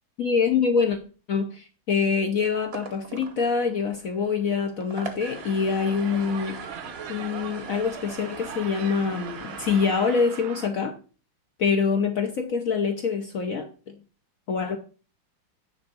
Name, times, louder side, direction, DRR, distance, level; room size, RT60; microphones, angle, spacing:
voice 1, 0.2-1.0 1.3-6.7 7.1-11.0 11.6-14.0 14.5-14.8, left 5 dB, 55° left, 1.0 m, -25 dB
sound 1, 2.6-9.9, right 3 dB, 40° right, 1.1 m, -41 dB
sound 2, 5.3-10.7, right 9 dB, 80° right, 1.6 m, -40 dB
9.7 x 3.6 x 6.3 m
omnidirectional pair, 2.3 m